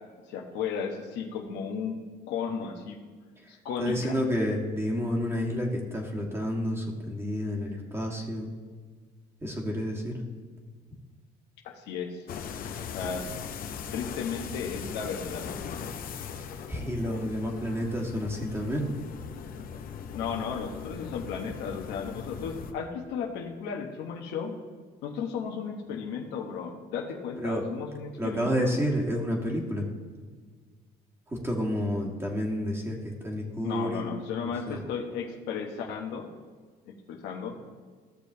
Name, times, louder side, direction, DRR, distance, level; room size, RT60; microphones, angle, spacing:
voice 1, 0.3-2.0 2.3-3.0 3.6-4.2 11.6-12.3 12.8-13.3 13.9-15.5 20.1-24.6 25.0-28.7 33.6-36.3 36.9-37.6, left 6 dB, 85° left, 3 dB, 1.0 m, -34 dB
voice 2, 3.8-8.5 9.4-10.2 16.7-18.9 27.4-27.7 28.2-29.9 31.3-34.0 34.7-34.8, equal, 15° right, -1 dB, 1.6 m, -30 dB
sound 1, 12.3-22.7, left 7 dB, 60° left, 0.7 m, -39 dB
14.5 x 6.6 x 2.7 m, 1.5 s
cardioid pair, 110°, 17 cm